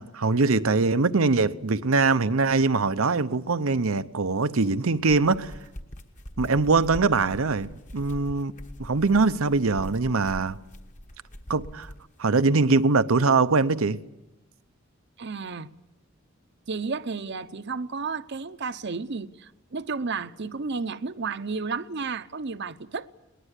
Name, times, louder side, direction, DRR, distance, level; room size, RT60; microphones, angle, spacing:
voice 1, 0.0-5.5 6.4-8.5 8.8-10.6 11.5-11.9 12.2-14.0, right 3 dB, 85° right, 0.8 m, -22 dB
sound 1, 4.9-12.1, equal, 35° left, 1.4 m, -42 dB
voice 2, 15.2-15.7 16.7-23.1, right 4 dB, 55° right, 0.8 m, -32 dB
22.5 x 20.0 x 8.2 m
head